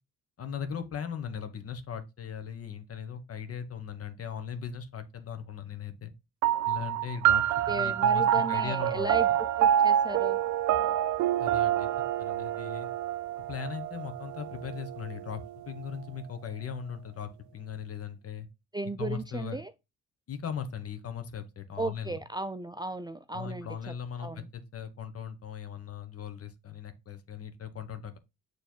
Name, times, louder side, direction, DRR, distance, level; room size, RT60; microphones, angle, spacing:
voice 1, 0.4-6.1 6.7-9.1 11.4-11.9 12.2-12.9 13.5-18.5 19.0-19.6 20.3-22.2 23.3-28.2, left 7 dB, 50° left, 1.2 m, -38 dB
sound 1, 6.4-15.2, right 11 dB, 70° right, 0.5 m, -27 dB
voice 2, 7.7-9.3 9.6-10.4 18.7-19.7 21.8-24.5, right 2 dB, 15° right, 0.4 m, -35 dB
6.9 x 3.3 x 4.4 m
cardioid pair, 90°, 30 cm